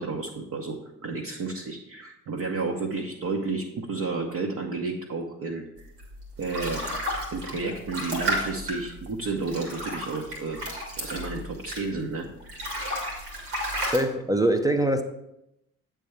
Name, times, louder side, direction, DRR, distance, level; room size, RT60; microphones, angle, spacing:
voice 1, 0.0-5.9 6.4-6.8 7.3-10.6 10.9-12.3, right 3 dB, 40° right, 0.9 m, -31 dB
sound 1, 6.0-12.1 12.4-14.0, equal, 80° right, 1.9 m, -32 dB
voice 2, 13.9-15.0, right 1 dB, 10° right, 0.4 m, -23 dB
8.2 x 3.5 x 5.6 m
figure-of-eight pair, 50°, 45 cm